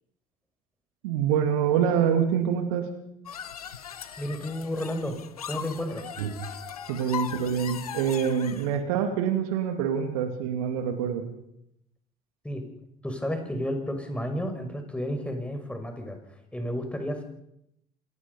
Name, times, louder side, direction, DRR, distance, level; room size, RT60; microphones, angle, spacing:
voice 1, 1.0-2.9 6.2-6.3 6.9-11.2, right 8 dB, 70° right, 7 dB, 2.5 m, -26 dB
sound 1, 3.3-8.8, left 8 dB, 85° left, 1.2 m, -39 dB
voice 2, 4.2-5.2 5.5-6.0 12.4-12.6 13.0-16.2 16.5-17.2, equal, 5° left, 5 dB, 6.0 m, -31 dB
27.5 x 19.0 x 5.6 m, 0.78 s
figure-of-eight pair, 60°, 19 cm